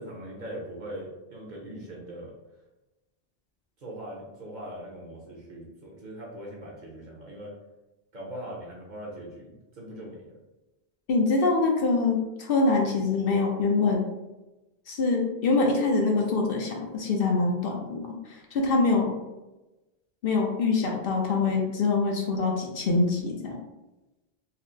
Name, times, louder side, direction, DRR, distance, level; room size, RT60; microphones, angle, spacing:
voice 1, 0.0-2.3 3.8-7.5 8.1-10.4, right 1 dB, 50° right, -3 dB, 0.8 m, -41 dB
voice 2, 11.1-14.0 14.9-18.2 18.5-19.1 20.2-23.6, left 3 dB, 65° left, 1 dB, 0.8 m, -24 dB
4.2 x 2.0 x 2.5 m, 1.0 s
omnidirectional pair, 1.1 m